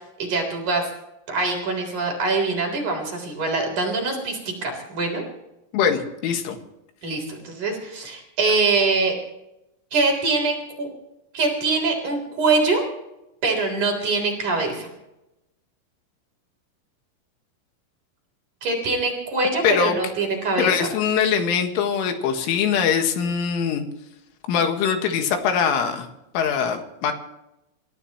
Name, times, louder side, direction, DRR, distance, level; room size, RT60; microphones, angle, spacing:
voice 1, 0.2-0.9 1.3-5.2 7.0-9.1 9.9-10.9 11.3-12.9 13.4-14.9 18.6-20.9, right 3 dB, 40° right, 2 dB, 4.7 m, -23 dB
voice 2, 5.7-6.6 19.6-20.0 20.6-23.8 24.5-26.1 26.4-27.1, left 7 dB, 75° left, 5 dB, 4.0 m, -22 dB
28.0 x 15.0 x 3.0 m, 0.89 s
omnidirectional pair, 5.7 m